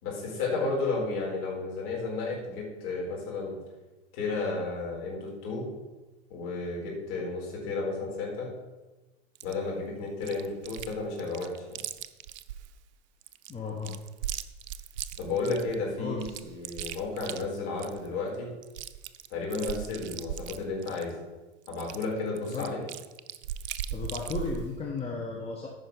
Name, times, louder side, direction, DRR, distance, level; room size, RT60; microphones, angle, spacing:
voice 1, 0.0-3.6 4.1-5.7 6.3-8.5 9.4-11.8 15.2-18.5 19.3-21.1 21.7-22.8, left 3 dB, 50° left, -2 dB, 4.3 m, -32 dB
Chewing mastication, 9.3-9.5 10.2-10.9 11.2-12.7 13.2-15.7 16.2-18.1 18.3-18.4 18.6-21.1 21.7-24.7, right 10 dB, 45° right, 0.6 m, -38 dB
voice 2, 13.5-14.0 16.0-16.5 22.5-22.7 23.9-25.7, left 4 dB, 20° left, -2 dB, 1.4 m, -35 dB
14.0 x 5.7 x 5.4 m, 1.1 s
figure-of-eight pair, 90°, 32 cm